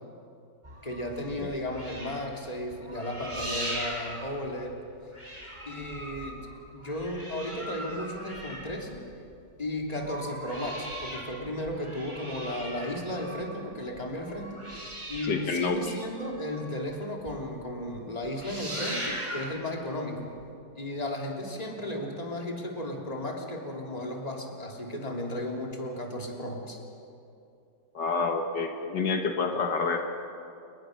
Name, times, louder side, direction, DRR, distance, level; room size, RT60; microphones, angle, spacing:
sound 1, 0.6-4.9 5.1-9.3 9.8-16.9 17.3-17.4 17.7-18.0 18.2-19.6 20.4-20.5, right 1 dB, 15° right, 4.5 m, -39 dB
voice 1, 0.8-4.8 5.7-6.4 6.7-9.0 9.6-14.6 15.1-20.3 20.8-26.8, left 1 dB, 20° left, 0 dB, 3.0 m, -34 dB
voice 2, 15.3-16.0 27.9-30.0, left 4 dB, 75° left, 4 dB, 2.1 m, -28 dB
29.5 x 20.0 x 6.5 m, 2.5 s
omnidirectional pair, 1.9 m